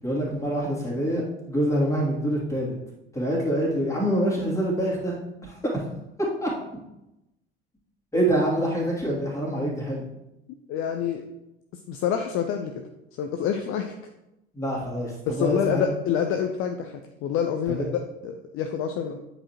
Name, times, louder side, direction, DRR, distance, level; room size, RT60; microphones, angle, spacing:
voice 1, 0.0-2.7 3.1-5.6 6.4-6.5 8.1-10.0 14.5-15.9 17.7-17.9, right 1 dB, 10° left, -5 dB, 2.6 m, -26 dB
voice 2, 10.7-11.2 11.9-12.7 13.2-13.9 15.3-19.2, left 8 dB, 45° left, 5 dB, 0.6 m, -27 dB
8.6 x 4.9 x 3.0 m, 0.90 s
figure-of-eight pair, 65°, 31 cm